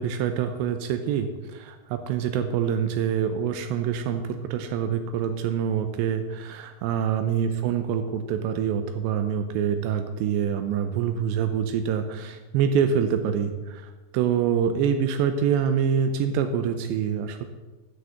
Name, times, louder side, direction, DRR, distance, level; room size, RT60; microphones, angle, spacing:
voice 1, 0.0-17.4, right 7 dB, 85° right, 7 dB, 2.5 m, -26 dB
11.0 x 6.6 x 7.6 m, 1.2 s
omnidirectional pair, 5.9 m